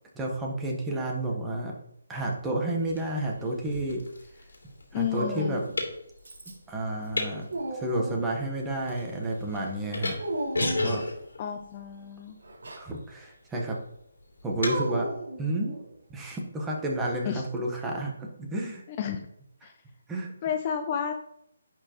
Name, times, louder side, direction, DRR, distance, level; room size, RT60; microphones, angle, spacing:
voice 1, 0.1-1.7 2.1-4.0 4.9-5.6 6.7-7.4 7.7-10.2 10.6-11.0 12.8-13.8 14.4-15.1 15.4-15.7 16.1-18.8 19.6-19.7 20.1-20.3, right 1 dB, 10° right, -1 dB, 1.1 m, -31 dB
Dog, 0.9-1.7 2.8-3.7 5.1-5.8 6.2-6.8 7.1-8.5 10.2-11.2 12.4-12.9 14.6-16.0, right 1 dB, 70° right, 1.5 m, -36 dB
sound 1, 2.8-14.8, left 2 dB, 85° left, 2.7 m, -37 dB
voice 2, 4.9-5.6 11.4-12.4 17.2-17.4 19.0-19.3 19.6-19.7 20.4-21.1, left 8 dB, 30° left, 6 dB, 0.5 m, -31 dB
10.5 x 4.4 x 3.0 m, 0.73 s
hypercardioid pair, 160°, 0 cm